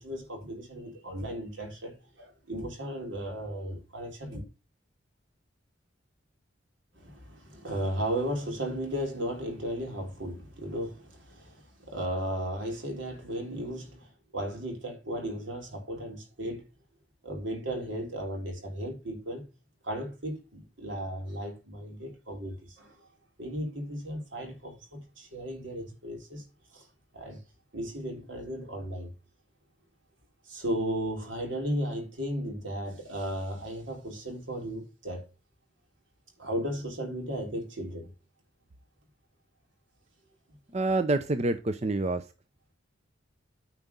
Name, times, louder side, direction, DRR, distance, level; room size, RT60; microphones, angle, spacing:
voice 1, 0.0-4.4 6.9-16.7 17.2-19.4 19.8-23.1 23.4-26.5 26.7-26.9 27.1-27.4 27.7-29.1 30.4-35.3 36.4-38.1, equal, 75° right, 3.6 m, -35 dB
voice 2, 40.7-42.3, right 2 dB, 35° right, 0.6 m, -27 dB
9.4 x 4.7 x 5.3 m
head